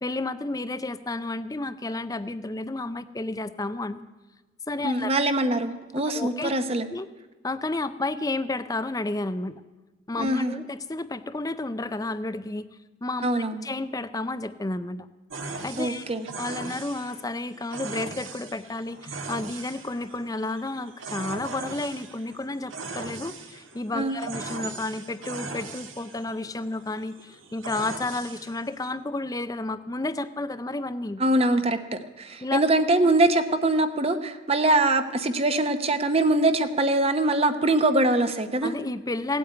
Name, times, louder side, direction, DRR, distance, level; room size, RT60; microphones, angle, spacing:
voice 1, 0.0-4.1 4.7-5.1 6.1-6.6 6.9-7.1 7.4-9.6 10.1-12.7 13.0-15.1 15.6-16.1 16.4-31.2 32.4-32.6 38.6-39.4, left 2 dB, 20° left, 13 dB, 0.5 m, -31 dB
voice 2, 4.8-6.9 10.2-10.5 13.2-13.6 15.8-16.3 23.9-24.2 31.2-38.7, right 2 dB, 30° right, 8 dB, 0.8 m, -23 dB
sound 1, 15.3-28.9, right 3 dB, 80° right, 1.7 m, -39 dB
17.0 x 8.6 x 9.1 m, 1.2 s
head